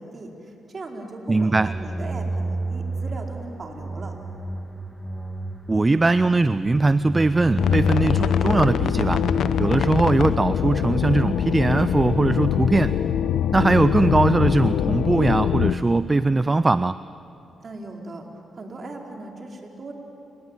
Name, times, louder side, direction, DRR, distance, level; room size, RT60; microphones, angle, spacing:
voice 1, 0.0-4.1 17.6-18.3 18.5-19.9, right 2 dB, 45° right, 1 dB, 4.6 m, -38 dB
voice 2, 1.3-1.7 5.7-9.2 9.6-12.9 13.5-17.0, right 3 dB, 25° right, 15 dB, 0.5 m, -20 dB
sound 1, 1.5-12.6, right 2 dB, 5° right, 1.8 m, -32 dB
sound 2, 7.6-15.7, left 9 dB, 75° left, 0.8 m, -23 dB
30.0 x 19.5 x 9.1 m, 2.8 s
cardioid pair, 65°, 0 cm